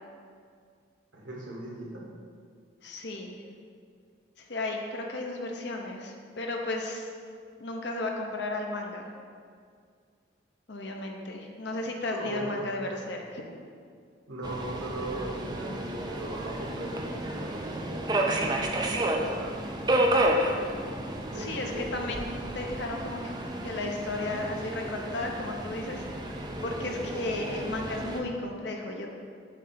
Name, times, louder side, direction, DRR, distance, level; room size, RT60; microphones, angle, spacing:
voice 1, 1.1-2.0 12.1-13.0 14.3-19.6 21.3-22.0, right 1 dB, 85° right, -3 dB, 1.4 m, -39 dB
voice 2, 2.8-3.3 4.4-7.1 7.6-9.1 10.7-13.4 21.4-22.3 22.5-23.3 23.6-26.1 26.3-29.1, left 2 dB, 65° left, 2 dB, 0.8 m, -34 dB
Subway metro underground, 14.4-28.2, right 1 dB, 20° right, 0.4 m, -31 dB
7.5 x 3.3 x 5.7 m, 2.1 s
head